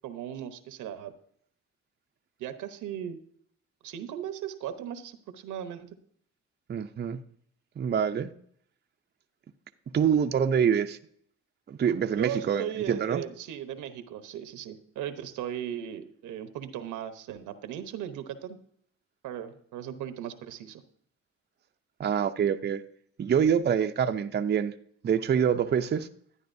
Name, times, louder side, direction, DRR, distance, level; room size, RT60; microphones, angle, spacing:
voice 1, 0.0-1.1 2.4-3.2 3.8-5.9 12.2-18.6 19.2-20.8, right 10 dB, 90° right, 1.0 m, -37 dB
voice 2, 6.7-7.2 7.8-8.3 9.9-11.0 11.7-13.2 22.0-22.8 23.2-24.7 25.0-26.1, right 8 dB, 35° right, 0.5 m, -25 dB
12.0 x 9.7 x 2.6 m
cardioid pair, 90°, 30 cm